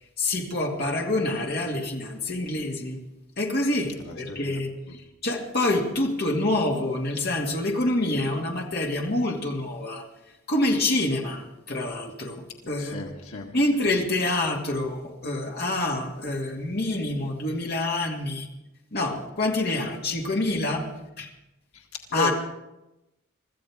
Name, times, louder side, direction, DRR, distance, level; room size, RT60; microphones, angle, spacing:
voice 1, 0.2-3.0 3.4-4.7 5.2-10.0 10.5-13.0 13.5-18.5 18.9-20.9 21.2-21.3 22.1-22.3, left 2 dB, 50° left, 0 dB, 2.2 m, -26 dB
voice 2, 4.0-4.6 12.8-13.5 22.1-22.3, left 2 dB, 90° left, 2 dB, 1.8 m, -34 dB
24.5 x 14.5 x 3.6 m, 0.95 s
head